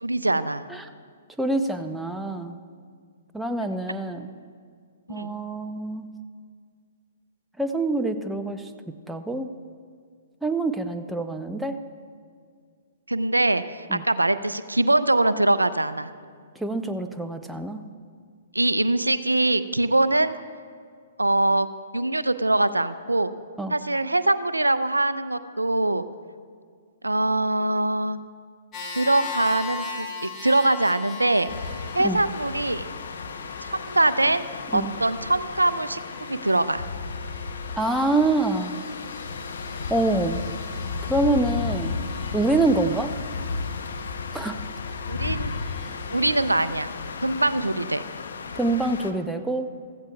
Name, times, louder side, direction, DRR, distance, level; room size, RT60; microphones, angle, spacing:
voice 1, 0.0-0.7 5.1-5.3 13.1-16.1 18.5-20.3 21.2-21.7 21.9-23.3 23.7-26.1 27.0-28.2 29.0-31.5 31.9-32.8 33.6-34.4 34.7-36.0 36.3-36.8 45.1-45.5 46.1-46.9 47.2-48.0, right 2 dB, 90° right, 14 dB, 0.4 m, -23 dB
voice 2, 1.4-2.6 3.3-4.3 5.1-6.1 7.6-8.7 9.1-9.5 10.4-11.8 13.9-14.0 16.6-17.8 23.6-23.7 32.0-32.2 34.7-34.9 37.8-38.8 39.9-40.4 41.1-42.0 42.3-43.1 44.3-44.6 48.5-49.7, right 2 dB, 5° right, 7 dB, 0.6 m, -25 dB
sound 1, 28.7-46.7, left 4 dB, 25° left, 1.9 m, -41 dB
sound 2, 31.5-49.1, left 4 dB, 65° left, 0.8 m, -34 dB
15.5 x 14.5 x 2.3 m, 2.1 s
figure-of-eight pair, 120°, 0 cm